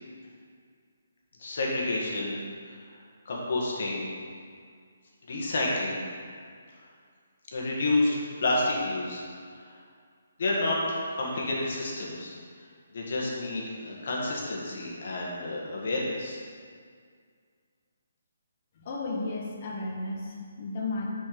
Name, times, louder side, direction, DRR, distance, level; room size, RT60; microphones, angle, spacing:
voice 1, 1.4-2.7 3.2-4.1 5.3-6.0 7.5-9.2 9.7-9.8 10.4-10.8 11.1-12.4 12.9-16.4, left 2 dB, 50° left, -3 dB, 1.7 m, -29 dB
voice 2, 18.8-21.1, left 2 dB, 30° left, -2 dB, 1.1 m, -33 dB
6.3 x 5.2 x 5.1 m, 2.1 s
hypercardioid pair, 175°, 0 cm